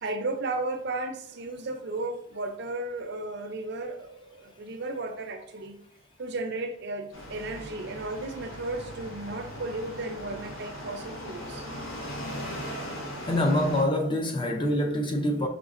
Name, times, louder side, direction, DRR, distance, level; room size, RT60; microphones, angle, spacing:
voice 1, 0.0-5.8 6.2-11.7, right 2 dB, 50° right, 0.4 m, -34 dB
sound 1, 7.1-13.8, equal, 75° left, 1.0 m, -39 dB
voice 2, 13.3-15.5, left 1 dB, 25° left, 0.4 m, -25 dB
5.0 x 3.2 x 2.4 m
head